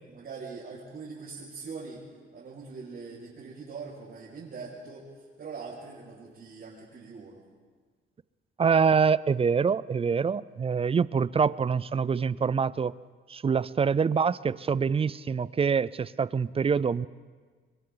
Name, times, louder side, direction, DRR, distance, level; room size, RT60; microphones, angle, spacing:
voice 1, 0.0-2.0 2.3-7.4, right 4 dB, 55° right, -7 dB, 6.0 m, -42 dB
voice 2, 8.6-13.0 13.3-17.1, right 6 dB, 30° right, 19 dB, 0.5 m, -25 dB
29.0 x 23.0 x 4.0 m, 1.5 s
cardioid pair, 90°, 20 cm